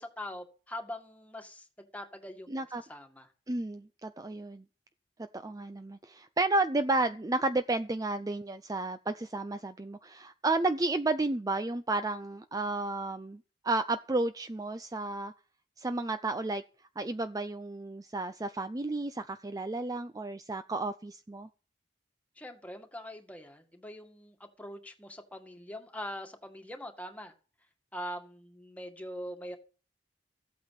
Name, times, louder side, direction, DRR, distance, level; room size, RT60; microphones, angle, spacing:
voice 1, 0.0-3.3 22.4-27.3 27.9-29.6, equal, 10° left, 2.0 m, -43 dB
voice 2, 2.5-2.8 3.5-4.6 5.3-15.3 15.8-16.6 17.0-21.5, right 2 dB, 20° right, 0.5 m, -32 dB
15.0 x 8.5 x 5.8 m
head